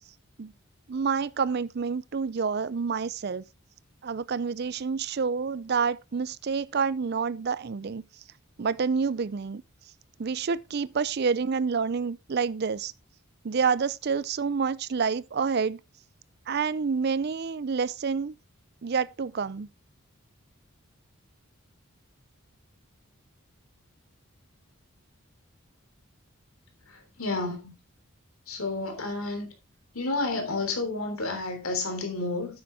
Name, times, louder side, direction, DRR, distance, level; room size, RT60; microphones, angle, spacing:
voice 1, 0.9-3.4 4.0-8.0 8.6-9.6 10.2-12.9 13.4-15.8 16.5-18.4 18.8-19.7, right 5 dB, 50° right, 0.4 m, -28 dB
voice 2, 26.9-27.7 28.5-29.5 29.9-32.6, left 3 dB, 80° left, 3.4 m, -31 dB
9.5 x 8.7 x 3.5 m
head